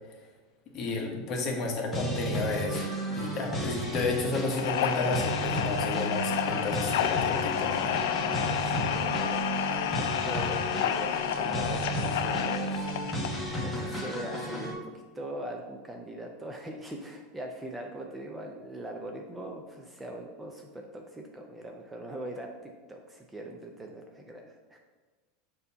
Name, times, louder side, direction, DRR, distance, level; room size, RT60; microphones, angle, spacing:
voice 1, 0.7-2.9 3.1-8.1, left 3 dB, 35° left, 1 dB, 1.1 m, -32 dB
sound 1, 1.9-14.7, right 1 dB, 10° left, 1.1 m, -33 dB
sound 2, 4.5-13.4, left 10 dB, 80° left, 0.4 m, -30 dB
voice 2, 8.1-12.9 13.1-14.8 15.1-24.8, right 1 dB, 10° right, 2 dB, 0.4 m, -41 dB
6.5 x 2.8 x 5.4 m, 1.3 s
supercardioid pair, 155°, 0 cm